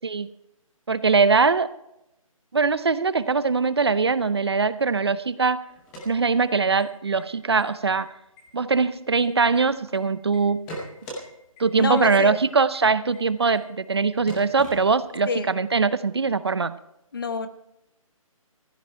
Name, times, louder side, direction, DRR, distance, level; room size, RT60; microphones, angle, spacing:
voice 1, 0.9-1.7 2.5-5.6 6.1-8.1 8.5-10.7 11.6-16.7, right 4 dB, 45° right, 15 dB, 0.6 m, -22 dB
sound 1, 5.7-6.8 7.2-7.3 7.6-8.0 8.4-10.0 10.3-11.2 11.6-11.7 12.0-12.1 12.3-12.4 12.7-12.8 13.1-13.2 13.5-13.6 13.9-14.0 14.3-15.3, equal, 5° left, 0.8 m, -40 dB
voice 2, 11.8-12.4 15.3-15.5 17.1-17.5, left 4 dB, 40° left, 11 dB, 1.0 m, -27 dB
15.0 x 13.0 x 4.5 m, 0.85 s
hypercardioid pair, 180°, 18 cm